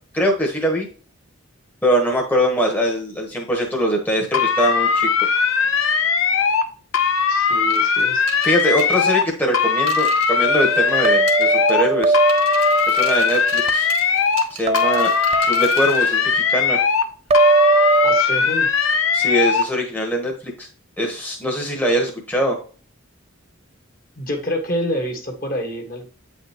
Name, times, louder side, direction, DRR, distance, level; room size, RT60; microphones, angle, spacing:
voice 1, 0.1-0.9 1.8-5.1 8.4-12.2 12.5-13.9 14.5-15.1 15.4-16.8 19.1-20.7 21.0-22.6, equal, 10° left, 0 dB, 1.0 m, -22 dB
sound 1, 4.3-6.7 6.9-9.3 9.5-11.9 12.1-14.5 14.7-17.1 17.3-19.7, left 6 dB, 75° left, 0.8 m, -19 dB
voice 2, 7.3-8.2 18.0-18.7 24.2-26.1, equal, 40° left, 3 dB, 1.4 m, -27 dB
sound 2, 7.7-11.0 11.3-11.9 12.3-16.2, right 7 dB, 75° right, 1.5 m, -37 dB
sound 3, 10.4-13.7 14.7-15.9 17.3-18.2, right 3 dB, 30° right, 0.4 m, -20 dB
8.6 x 5.1 x 2.9 m, 0.41 s
head